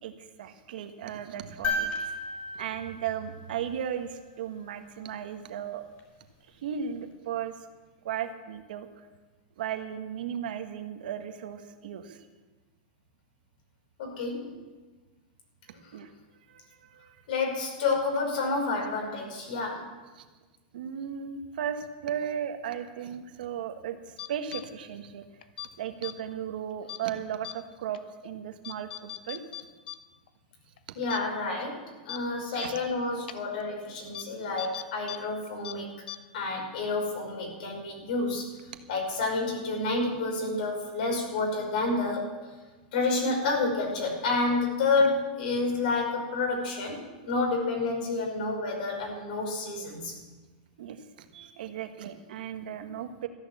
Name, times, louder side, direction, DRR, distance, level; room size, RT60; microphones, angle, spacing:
voice 1, 0.4-1.9 2.5-5.8 6.6-7.5 8.0-9.0 9.6-12.2 15.7-16.1 16.5-17.2 20.1-20.2 20.7-25.2 25.8-29.4 32.5-32.7 50.8-53.3, right 9 dB, 75° right, 6 dB, 1.5 m, -36 dB
sound 1, 1.6-4.0 6.0-6.1, left 2 dB, 30° left, 4.5 m, -34 dB
voice 2, 14.0-14.6 17.3-19.9 31.0-36.0 36.3-38.5 38.9-42.3 42.9-50.2, left 3 dB, 70° left, 1 dB, 5.4 m, -29 dB
sound 2, 24.2-24.6 25.4-25.7 26.0-26.1 26.9-27.1 27.4-27.5 27.9-28.0 28.6-30.0 30.3-30.4 30.8-30.9 31.1-31.2 31.6-31.7 32.1-32.2 32.6-32.7 33.3-33.4 34.1-34.2 34.6-35.2 35.4-35.7 36.1-36.2, left 12 dB, 85° left, 0.9 m, -38 dB
14.0 x 11.5 x 7.2 m, 1.3 s
supercardioid pair, 160°, 5 cm